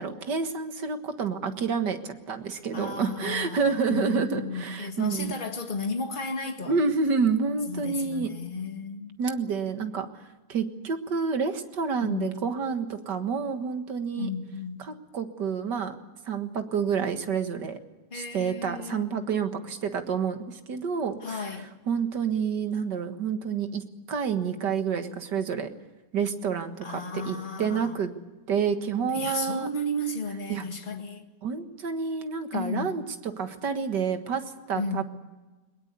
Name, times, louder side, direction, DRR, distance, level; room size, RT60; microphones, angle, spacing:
voice 1, 0.0-5.3 6.7-8.3 9.2-14.3 14.8-16.0 16.2-17.8 18.1-21.6 21.9-25.7 26.1-28.1 28.5-29.7 30.5-30.6 31.4-33.0 33.4-35.0, right 5 dB, 85° right, 2.2 m, -29 dB
voice 2, 2.7-6.8 7.7-9.2 12.0-12.4 14.2-14.8 18.1-19.0 21.2-21.7 26.8-28.0 29.1-31.3 32.5-33.0 34.7-35.0, left 2 dB, 30° left, 2.0 m, -33 dB
22.0 x 21.5 x 8.2 m
omnidirectional pair, 1.8 m